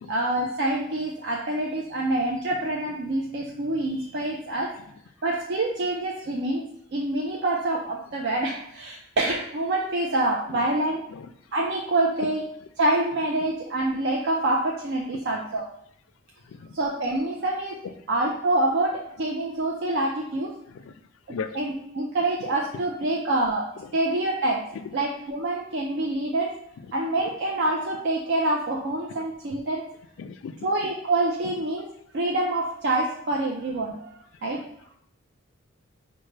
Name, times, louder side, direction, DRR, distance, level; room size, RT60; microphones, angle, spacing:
voice 1, 0.1-4.7 5.2-11.0 11.5-12.4 12.8-15.6 16.7-17.8 18.1-20.6 21.5-24.6 24.9-26.5 26.9-29.8 30.6-34.1 34.4-34.6, right 2 dB, 55° right, -2 dB, 0.4 m, -26 dB
voice 2, 30.2-30.7 34.5-34.6, left 5 dB, 70° left, 9 dB, 0.3 m, -37 dB
5.3 x 2.1 x 3.2 m, 0.73 s
head